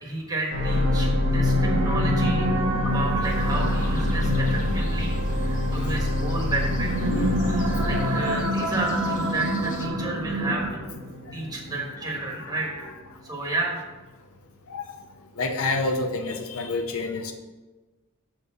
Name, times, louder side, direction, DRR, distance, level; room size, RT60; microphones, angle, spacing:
voice 1, 0.0-2.5 2.8-5.1 5.4-6.9 7.8-10.8 11.3-12.7 13.2-13.8, right 2 dB, 20° right, -2 dB, 1.4 m, -31 dB
sound 1, 0.5-12.9 13.5-13.6, left 2 dB, 55° right, 1.6 m, -26 dB
sound 2, 1.2-11.1, right 1 dB, 85° right, 1.5 m, -29 dB
sound 3, 3.2-9.9, left 1 dB, 35° left, 1.0 m, -42 dB
voice 2, 12.4-12.9 14.7-15.0 15.4-17.3, left 3 dB, 75° left, 5 dB, 0.7 m, -29 dB
6.8 x 4.3 x 6.4 m, 1.2 s
head